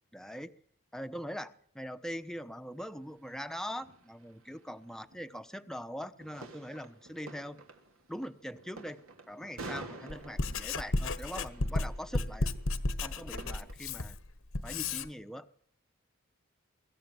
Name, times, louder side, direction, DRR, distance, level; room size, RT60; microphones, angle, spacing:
voice 1, 0.1-0.5 0.9-7.6 8.1-9.0 9.3-12.5 13.0-14.2 14.6-15.5, equal, ahead, 9 dB, 0.9 m, -42 dB
sound 1, 2.3-2.4 3.0-5.5 6.1-13.7, right 2 dB, 80° right, 3.1 m, -50 dB
Writing, 10.1-15.1, left 2 dB, 75° left, 1.3 m, -33 dB
23.5 x 14.0 x 9.3 m, 0.62 s
head